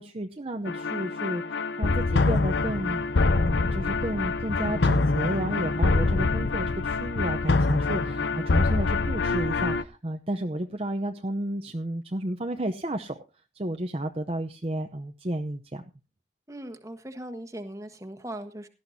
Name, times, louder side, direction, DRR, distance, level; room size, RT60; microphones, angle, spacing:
voice 1, 0.0-13.2 13.5-15.8, right 1 dB, 35° right, 4 dB, 0.8 m, -32 dB
sound 1, 0.7-9.8, left 3 dB, 85° left, 0.7 m, -25 dB
voice 2, 16.5-18.7, right 1 dB, 20° right, 8 dB, 1.4 m, -39 dB
18.0 x 12.5 x 2.8 m, 0.30 s
head